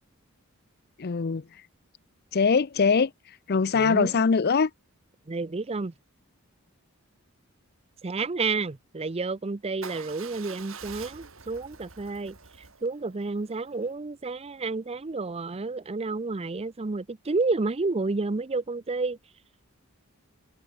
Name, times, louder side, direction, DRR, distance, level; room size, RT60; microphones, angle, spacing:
voice 1, 1.0-1.4 2.3-3.1 3.5-4.7, left 5 dB, 50° left, 0.5 m, -22 dB
voice 2, 3.7-4.1 5.3-5.9 8.0-19.2, right 3 dB, 30° right, 0.6 m, -30 dB
Motorcycle / Engine starting / Idling, 9.8-13.9, right 6 dB, 70° right, 3.9 m, -46 dB
head